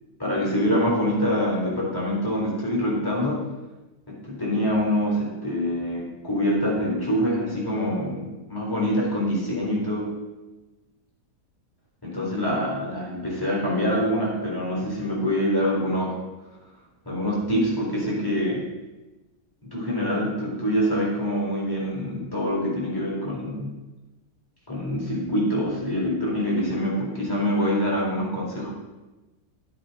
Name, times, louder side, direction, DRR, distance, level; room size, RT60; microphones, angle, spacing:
voice 1, 0.2-3.5 4.1-10.1 12.0-16.2 17.0-18.6 19.7-23.7 24.7-28.7, equal, 10° left, -5 dB, 3.4 m, -25 dB
12.0 x 8.3 x 4.0 m, 1.1 s
omnidirectional pair, 1.8 m